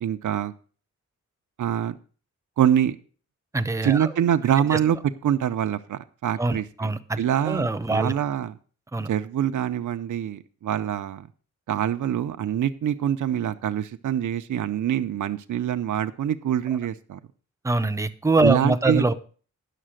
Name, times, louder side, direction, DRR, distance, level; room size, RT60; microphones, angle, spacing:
voice 1, 0.0-0.5 1.6-2.0 2.6-3.0 3.8-5.0 5.2-6.6 7.2-8.5 9.1-11.3 11.7-17.2 18.4-19.1, right 10 dB, 75° right, 0.6 m, -25 dB
voice 2, 3.5-4.1 4.7-4.8 6.4-7.2 7.4-8.1 8.9-9.1 17.6-19.1, right 2 dB, 10° right, 0.5 m, -23 dB
10.0 x 6.6 x 6.3 m
wide cardioid pair, 160°, 31 cm